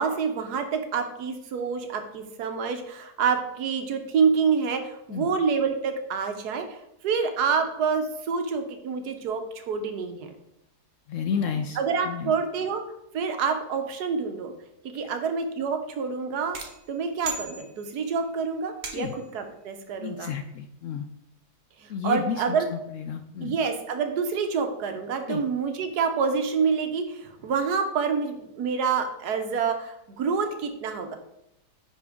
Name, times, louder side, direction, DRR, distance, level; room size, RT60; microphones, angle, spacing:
voice 1, 0.0-10.4 11.8-12.8 13.1-14.5 14.8-16.6 16.9-20.3 21.8-22.7 23.4-31.2, right 5 dB, 80° right, 6 dB, 1.4 m, -27 dB
voice 2, 11.1-11.8 12.0-12.3 18.9-19.1 20.0-21.0 21.9-23.6 25.3-25.4, left 7 dB, 70° left, 7 dB, 0.8 m, -31 dB
sound 1, 16.5-18.2 18.8-19.4, right 4 dB, 55° right, 1.3 m, -37 dB
10.0 x 4.3 x 3.6 m, 0.85 s
omnidirectional pair, 1.7 m